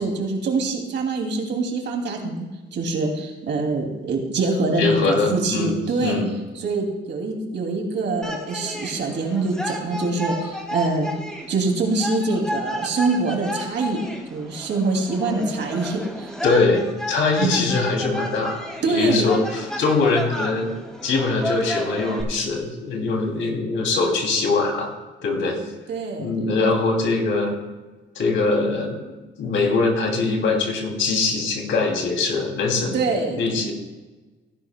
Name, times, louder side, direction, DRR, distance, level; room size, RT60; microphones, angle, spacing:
voice 1, 0.0-6.2 6.6-11.1 11.5-14.0 14.3-16.3 17.4-17.7 18.8-19.3 25.9-26.3 32.9-33.6, right 3 dB, 65° right, 2 dB, 2.5 m, -24 dB
voice 2, 4.8-6.3 16.4-20.7 21.0-24.9 25.2-25.6 26.2-27.5 28.1-29.1 29.4-33.0 33.3-33.7, left 3 dB, 70° left, 1 dB, 2.7 m, -22 dB
sound 1, 8.2-22.2, equal, 5° left, 2.2 m, -32 dB
17.0 x 10.5 x 2.2 m, 1.2 s
cardioid pair, 90°, 20 cm